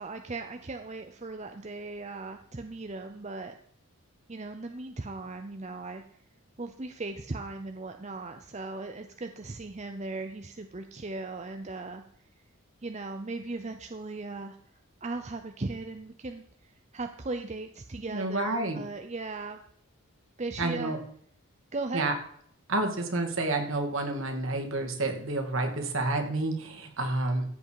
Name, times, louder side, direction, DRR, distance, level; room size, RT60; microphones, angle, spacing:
voice 1, 0.0-3.6 4.3-6.0 6.6-12.0 12.8-14.6 15.0-19.6 20.4-20.9 21.7-22.1, right 3 dB, 30° right, 6 dB, 0.6 m, -38 dB
voice 2, 18.1-18.8 20.6-21.0 21.9-22.2 22.7-27.5, right 2 dB, 60° right, 3 dB, 2.4 m, -29 dB
15.0 x 8.3 x 4.8 m, 0.64 s
head